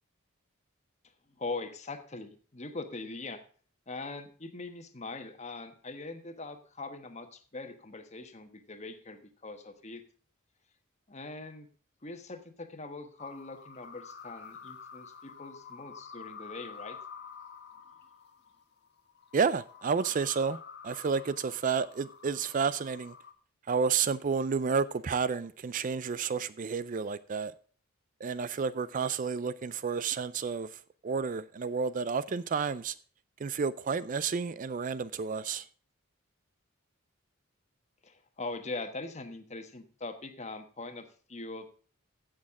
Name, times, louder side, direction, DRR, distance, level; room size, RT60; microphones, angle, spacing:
voice 1, 1.4-3.4 3.9-10.0 11.1-11.7 12.0-17.0 38.0-41.7, left 3 dB, 35° left, 1.2 m, -42 dB
sound 1, 13.2-23.3, left 6 dB, 55° left, 1.1 m, -49 dB
voice 2, 19.3-20.6 20.8-23.1 23.7-27.5 28.2-32.9 33.4-35.7, right 5 dB, 40° right, 0.4 m, -31 dB
16.0 x 6.4 x 3.6 m
head